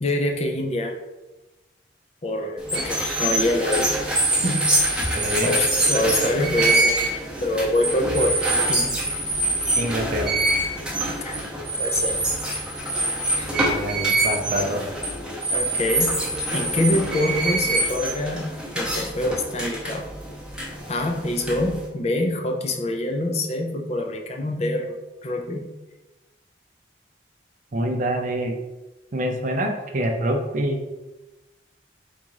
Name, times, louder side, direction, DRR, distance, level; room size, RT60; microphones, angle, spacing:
voice 1, 0.0-1.0 2.2-3.9 5.4-8.4 8.7-8.9 11.2-11.3 11.8-12.1 13.4-13.5 15.5-16.1 16.5-18.5 18.7-20.1 20.9-25.7, left 1 dB, 35° left, 3 dB, 0.5 m, -25 dB
sound 1, 2.6-21.9, right 2 dB, 5° right, 0.8 m, -25 dB
voice 2, 4.4-4.7 5.1-5.5 9.8-10.3 13.6-14.8 27.7-28.6 29.1-30.8, right 1 dB, 40° right, 4 dB, 0.5 m, -26 dB
4.0 x 2.5 x 4.6 m, 1.1 s
head